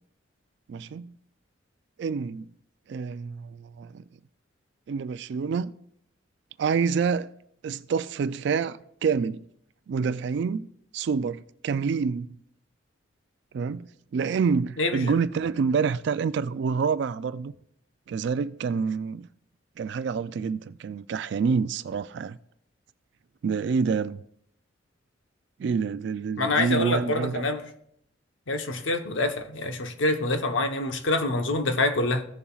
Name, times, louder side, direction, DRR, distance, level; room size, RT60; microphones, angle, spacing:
voice 1, 0.7-1.1 2.0-2.5 2.9-4.0 4.9-5.7 6.6-7.3 7.6-9.4 9.9-10.7 10.9-12.3 13.5-13.8 14.1-17.5 18.1-19.3 19.8-22.4 23.4-24.2 25.6-27.4, right 5 dB, 60° right, 0.3 m, -27 dB
voice 2, 14.8-15.1 26.4-27.6 28.5-32.2, left 2 dB, 70° left, 0.9 m, -26 dB
15.5 x 6.9 x 2.4 m
head